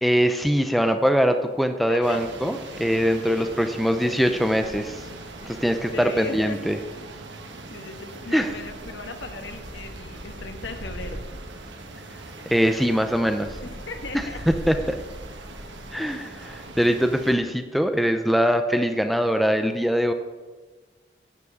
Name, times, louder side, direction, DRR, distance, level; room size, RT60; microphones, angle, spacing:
voice 1, 0.0-5.0 5.5-6.8 8.3-8.5 12.5-13.6 14.5-15.0 15.9-20.1, equal, ahead, 7 dB, 0.6 m, -22 dB
voice 2, 1.9-2.2 3.2-3.6 5.4-5.6 5.9-6.8 7.7-11.3 13.6-14.4 16.0-16.3, left 3 dB, 80° left, 5 dB, 1.6 m, -38 dB
sound 1, 2.0-17.3, right 1 dB, 80° right, 1.6 m, -39 dB
11.0 x 7.5 x 8.3 m, 1.3 s
head